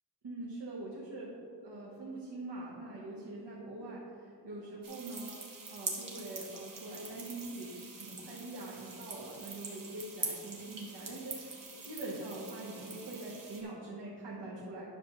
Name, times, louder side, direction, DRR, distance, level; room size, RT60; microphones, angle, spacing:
voice 1, 0.2-1.3 1.6-5.3 5.7-14.8, right 2 dB, 70° right, -6 dB, 1.4 m, -43 dB
sound 1, 4.8-13.6, right 4 dB, 50° right, 1.3 m, -44 dB
10.5 x 6.3 x 3.2 m, 2.6 s
wide cardioid pair, 165°, 43 cm